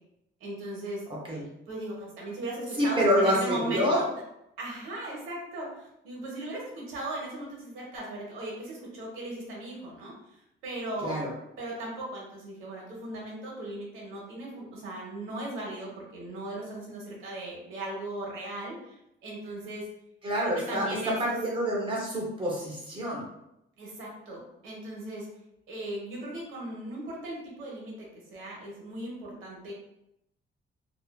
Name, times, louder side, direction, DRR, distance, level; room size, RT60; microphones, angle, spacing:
voice 1, 0.4-1.0 1.7-4.1 4.6-10.1 10.6-11.2 11.6-19.0 19.2-19.9 20.4-21.4 23.8-25.3 25.7-29.7, right 1 dB, 90° right, -3 dB, 0.9 m, -37 dB
voice 2, 2.8-4.0 11.0-11.3 20.2-23.2, equal, 25° right, -3 dB, 0.6 m, -27 dB
2.4 x 2.3 x 2.2 m, 0.83 s
cardioid pair, 170°, 20 cm